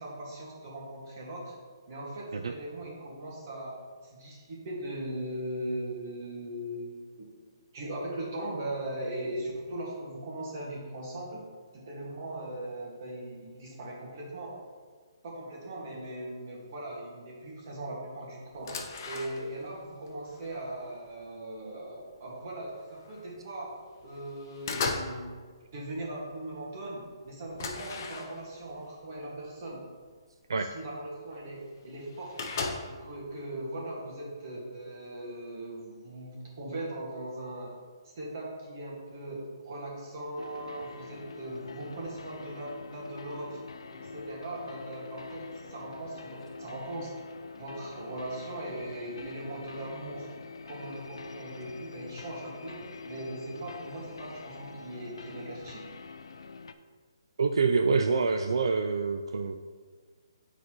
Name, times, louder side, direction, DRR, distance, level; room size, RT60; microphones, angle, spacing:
voice 1, 0.0-1.5 1.9-3.8 4.0-7.3 7.7-11.4 11.7-14.6 15.2-18.8 19.1-25.4 25.7-29.8 30.6-32.4 32.8-37.7 38.0-43.6 43.9-47.1 47.5-50.3 50.7-55.8, right 1 dB, 40° right, -4 dB, 1.8 m, -39 dB
sound 1, 18.5-19.7 20.1-21.2 21.8-22.0 22.3-23.3 23.7-24.1 24.4-25.3 25.5-26.0 26.5-26.6 26.8-26.9 27.6-28.7 29.5-29.6 30.0-30.1 31.3-31.4 31.5-31.6 31.8-33.1, left 4 dB, 40° left, 0.7 m, -37 dB
sound 2, 40.4-56.7, left 4 dB, 85° left, 0.4 m, -45 dB
voice 2, 57.4-59.6, right 4 dB, 75° right, 6 dB, 0.3 m, -26 dB
9.5 x 4.0 x 3.1 m, 1.5 s
hypercardioid pair, 165°, 3 cm